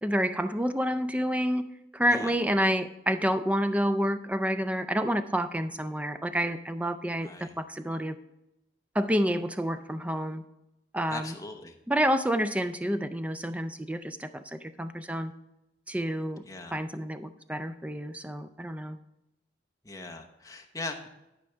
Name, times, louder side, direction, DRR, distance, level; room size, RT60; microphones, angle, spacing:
voice 1, 0.0-1.7 1.9-8.1 8.9-10.4 10.9-11.3 11.9-15.3 15.9-16.4 16.7-19.0, equal, 10° right, 10 dB, 0.4 m, -29 dB
voice 2, 7.2-7.5 11.1-11.7 16.5-16.8 19.8-21.1, left 2 dB, 20° left, 3 dB, 0.9 m, -40 dB
12.0 x 5.2 x 4.5 m, 0.90 s
head